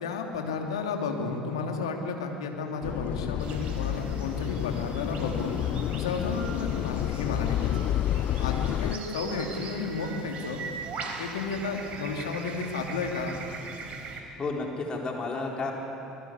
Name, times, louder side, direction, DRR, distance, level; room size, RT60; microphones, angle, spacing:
voice 1, 0.0-5.6 5.9-7.7 8.4-10.6 11.2-13.4, left 4 dB, 75° left, 2 dB, 2.7 m, -32 dB
sound 1, 2.8-9.0, left 12 dB, 50° left, 0.5 m, -30 dB
sound 2, 3.4-14.2, right 4 dB, 45° right, 4.1 m, -41 dB
voice 2, 14.4-15.7, left 3 dB, 30° left, 0 dB, 4.3 m, -31 dB
26.0 x 20.5 x 8.3 m, 2.9 s
figure-of-eight pair, 65°, 3 cm